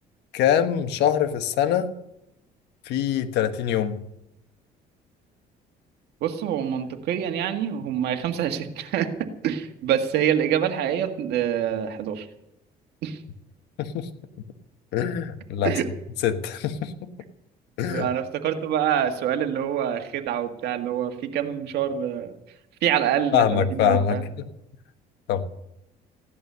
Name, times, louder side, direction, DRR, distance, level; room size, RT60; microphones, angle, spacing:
voice 1, 0.3-1.9 2.8-4.0 13.8-14.1 14.9-15.7 16.2-17.1 17.8-18.1 23.3-24.2 25.3-25.4, left 9 dB, 80° left, 9 dB, 1.4 m, -23 dB
voice 2, 6.2-12.3 13.0-13.2 15.6-15.9 17.9-22.3 22.8-24.2, right 9 dB, 75° right, 6 dB, 1.8 m, -26 dB
16.0 x 11.0 x 6.9 m, 0.84 s
cardioid pair, 110°, 17 cm